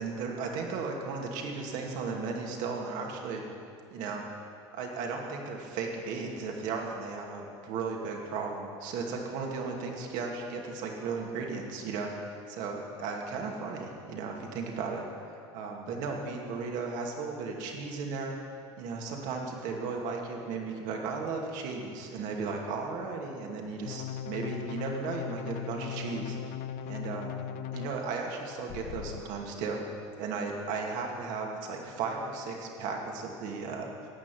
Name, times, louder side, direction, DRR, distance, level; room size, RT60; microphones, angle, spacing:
voice 1, 0.0-3.4 3.9-4.2 4.7-15.0 15.5-18.4 18.8-26.4 26.8-27.3 27.7-29.8 30.2-33.9, right 4 dB, 60° right, 0 dB, 2.3 m, -35 dB
sound 1, 23.8-27.9 28.7-29.2, left 9 dB, 60° left, 0.7 m, -38 dB
14.0 x 9.4 x 6.2 m, 2.4 s
hypercardioid pair, 80°, 15 cm